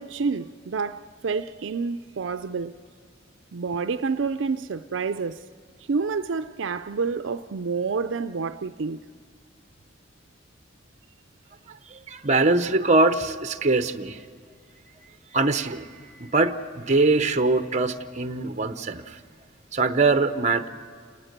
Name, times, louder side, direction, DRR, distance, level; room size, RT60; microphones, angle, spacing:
voice 1, 0.0-2.7 3.5-5.4 5.9-9.1, right 4 dB, 75° right, 0.5 m, -28 dB
voice 2, 11.7-14.2 15.3-19.2 19.7-20.7, right 3 dB, 40° right, 0.9 m, -23 dB
28.5 x 19.5 x 6.7 m
head